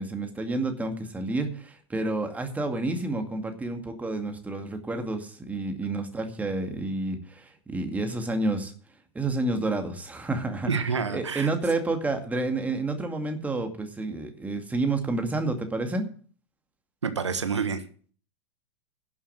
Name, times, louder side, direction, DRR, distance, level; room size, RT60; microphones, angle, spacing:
voice 1, 0.0-8.7 9.1-10.7 11.1-16.1, right 2 dB, 10° right, 5 dB, 2.2 m, -29 dB
voice 2, 10.7-11.5 17.0-17.8, right 5 dB, 80° right, 9 dB, 1.3 m, -28 dB
11.5 x 7.3 x 7.7 m, 0.44 s
figure-of-eight pair, 95°, 15 cm